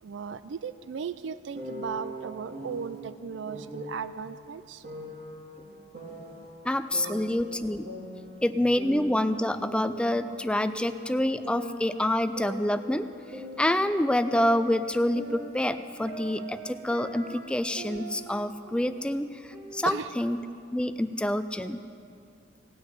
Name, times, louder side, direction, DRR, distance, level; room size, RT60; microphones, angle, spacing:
voice 1, 0.0-4.8 7.0-7.2 19.9-20.1, right 6 dB, 75° right, 0.4 m, -36 dB
sound 1, 1.5-3.0 3.5-4.0 4.8-6.5 6.9-8.5 8.8-11.0 11.4-13.9 14.2-18.3 18.6-19.0 19.5-20.5, right 1 dB, 55° right, 3.1 m, -41 dB
voice 2, 6.6-7.9 8.4-13.1 13.3-20.4 20.7-21.8, left 1 dB, 5° left, 0.3 m, -27 dB
17.5 x 6.6 x 9.2 m
head